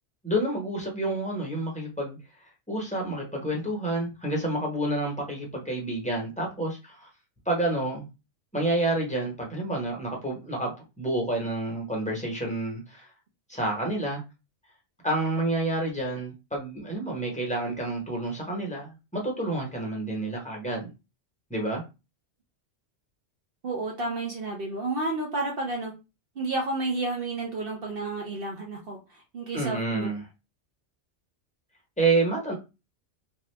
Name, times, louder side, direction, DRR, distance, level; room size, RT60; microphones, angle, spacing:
voice 1, 0.2-7.1 7.5-8.1 8.5-13.1 13.5-14.2 15.0-20.9 21.5-21.8 29.5-30.2 32.0-32.5, right 2 dB, 5° left, 0.9 m, -29 dB
voice 2, 23.6-25.9 26.4-30.1, right 2 dB, 55° right, 0.8 m, -31 dB
2.8 x 2.4 x 3.3 m
omnidirectional pair, 1.2 m